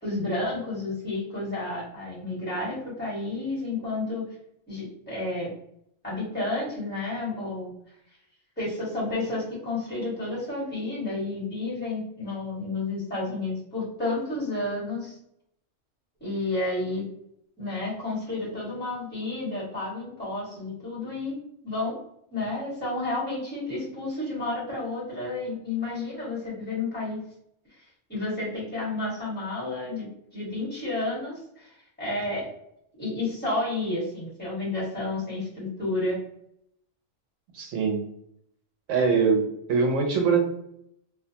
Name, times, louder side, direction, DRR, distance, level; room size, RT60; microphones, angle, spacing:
voice 1, 0.0-4.3 4.7-5.5 6.0-7.7 8.6-15.2 16.2-17.1 17.6-22.0 22.3-27.2 28.1-32.5 33.0-36.2, left 2 dB, 10° left, -8 dB, 1.2 m, -31 dB
voice 2, 37.5-38.0 38.9-40.4, right 5 dB, 75° right, 2 dB, 1.0 m, -23 dB
2.4 x 2.2 x 2.7 m, 0.73 s
omnidirectional pair, 1.3 m